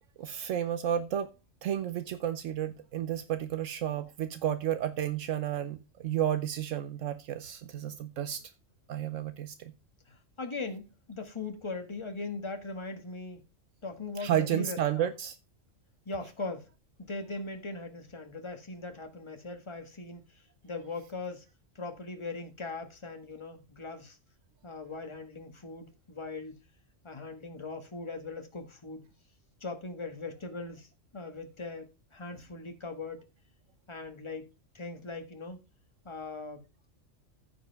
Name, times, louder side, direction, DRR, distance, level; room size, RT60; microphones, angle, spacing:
voice 1, 0.2-1.3 1.6-8.4 8.9-9.7 14.2-15.4, right 10 dB, 80° right, 1.1 m, -32 dB
voice 2, 10.1-13.4 13.8-15.1 16.0-16.7 17.0-21.4 21.7-24.2 24.6-26.6 27.0-29.0 29.6-30.9 31.1-33.3 33.9-35.6 36.0-36.6, left 3 dB, 25° left, 1.5 m, -40 dB
14.5 x 5.1 x 3.4 m
omnidirectional pair, 1.3 m